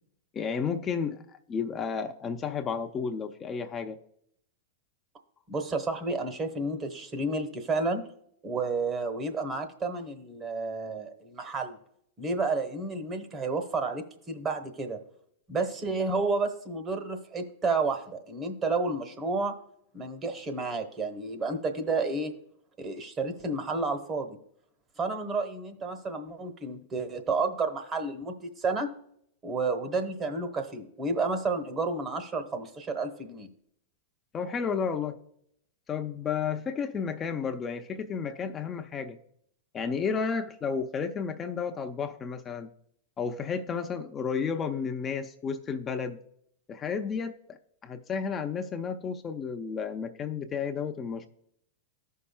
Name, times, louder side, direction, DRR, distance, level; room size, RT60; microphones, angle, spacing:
voice 1, 0.3-1.2 1.5-4.0 34.3-35.2 35.9-39.2 39.7-42.7 43.2-46.2 46.7-51.3, left 6 dB, 25° left, 5 dB, 0.6 m, -32 dB
voice 2, 5.5-8.0 8.4-11.8 12.2-15.0 15.5-19.5 19.9-22.3 22.8-24.4 25.0-28.9 29.4-33.5, right 3 dB, 25° right, 7 dB, 1.1 m, -31 dB
15.0 x 5.6 x 2.2 m, 0.71 s
hypercardioid pair, 110°, 0 cm